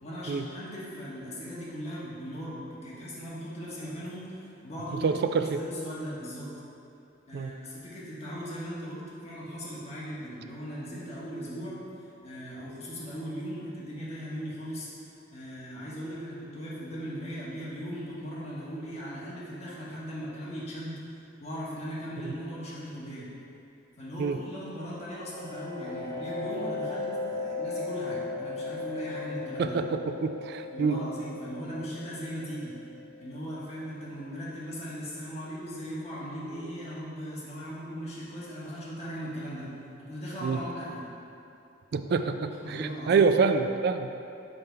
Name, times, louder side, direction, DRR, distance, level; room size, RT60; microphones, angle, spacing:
voice 1, 0.0-5.2 5.4-6.5 7.3-11.8 12.2-21.0 21.4-23.3 24.0-29.7 30.7-32.8 33.2-39.7 40.0-41.1 42.6-43.4, equal, 35° left, -8 dB, 1.5 m, -38 dB
voice 2, 5.0-5.6 7.3-7.5 22.2-22.3 24.2-24.4 29.6-31.0 40.4-40.6 41.9-44.1, right 5 dB, 55° right, 8 dB, 0.3 m, -26 dB
sound 1, 24.8-34.2, left 3 dB, 55° left, 1.1 m, -37 dB
5.6 x 5.2 x 4.5 m, 2.7 s
head